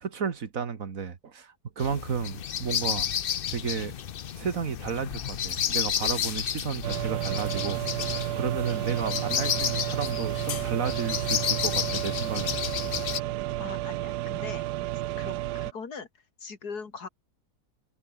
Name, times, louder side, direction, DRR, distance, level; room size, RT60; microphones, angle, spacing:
voice 1, 0.0-3.1 3.5-4.0 4.4-12.6, right 6 dB, 55° right, 1.9 m, -33 dB
sound 1, 1.8-13.2, left 9 dB, 55° left, 0.6 m, -31 dB
sound 2, 6.8-15.7, right 15 dB, 90° right, 1.2 m, -31 dB
voice 2, 13.6-14.6 15.2-16.1 16.4-17.1, left 5 dB, 75° left, 3.1 m, -40 dB
omnidirectional pair, 1.7 m